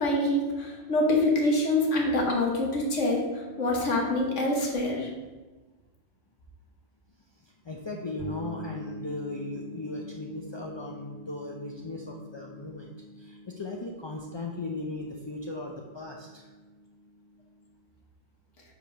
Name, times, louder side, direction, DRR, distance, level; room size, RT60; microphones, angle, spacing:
voice 1, 0.0-5.1, left 1 dB, 80° left, 0 dB, 1.6 m, -25 dB
voice 2, 7.6-12.9 13.2-16.5, left 2 dB, 45° left, 0 dB, 0.3 m, -37 dB
sound 1, 8.2-17.8, left 1 dB, 20° left, 1.7 m, -46 dB
5.1 x 4.6 x 5.7 m, 1.3 s
omnidirectional pair, 1.2 m